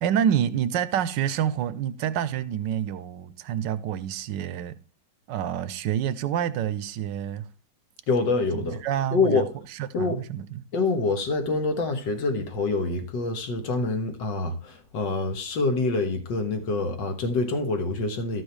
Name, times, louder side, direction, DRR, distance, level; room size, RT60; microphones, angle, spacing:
voice 1, 0.0-4.8 5.3-7.4 8.5-9.5 9.7-10.6, right 9 dB, 85° right, 1.3 m, -27 dB
voice 2, 8.1-8.8 9.1-9.5 9.9-10.2 10.7-18.4, left 3 dB, 85° left, 2.0 m, -26 dB
13.0 x 6.3 x 3.2 m
omnidirectional pair, 1.9 m